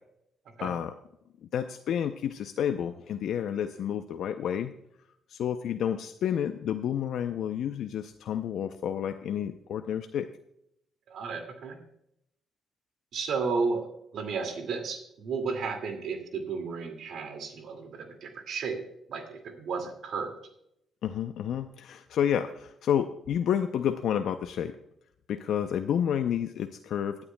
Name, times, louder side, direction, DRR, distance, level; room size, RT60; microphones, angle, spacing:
voice 1, 0.6-0.9 1.5-4.7 5.3-10.3 21.0-24.8 25.3-27.2, left 9 dB, 75° left, 8 dB, 0.5 m, -30 dB
voice 2, 11.1-11.8 13.1-13.9 14.1-18.8 19.1-20.3, right 4 dB, 70° right, 5 dB, 2.1 m, -33 dB
18.5 x 9.7 x 2.2 m, 0.78 s
cardioid pair, 90°, 0 cm